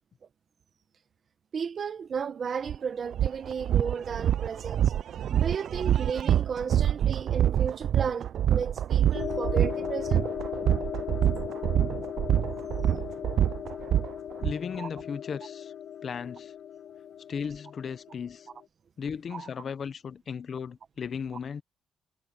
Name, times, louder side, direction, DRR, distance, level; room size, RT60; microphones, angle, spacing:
voice 1, 1.5-4.8 5.4-10.2 14.7-14.9 19.3-19.5, right 6 dB, 50° right, 1.6 m, -34 dB
sound 1, 2.7-2.8 3.1-14.5, right 10 dB, 65° right, 0.5 m, -26 dB
sound 2, 9.1-18.6, left 9 dB, 70° left, 1.8 m, -37 dB
voice 2, 14.4-15.7 16.0-16.5 17.3-18.5 19.0-21.6, left 6 dB, 50° left, 1.1 m, -36 dB
cardioid pair, 105°, 0 cm